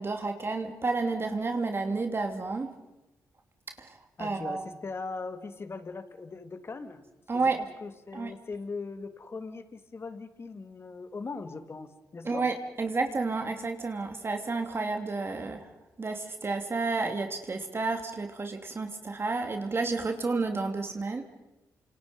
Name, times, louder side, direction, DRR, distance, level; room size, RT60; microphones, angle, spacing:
voice 1, 0.0-2.7 3.8-4.6 7.3-7.6 8.1-8.3 12.2-15.7 16.0-21.2, right 3 dB, 40° right, 5 dB, 3.0 m, -31 dB
voice 2, 4.2-7.0 7.3-12.5, left 4 dB, 40° left, 9 dB, 2.5 m, -40 dB
29.0 x 26.5 x 5.4 m, 0.99 s
supercardioid pair, 60°, 6 cm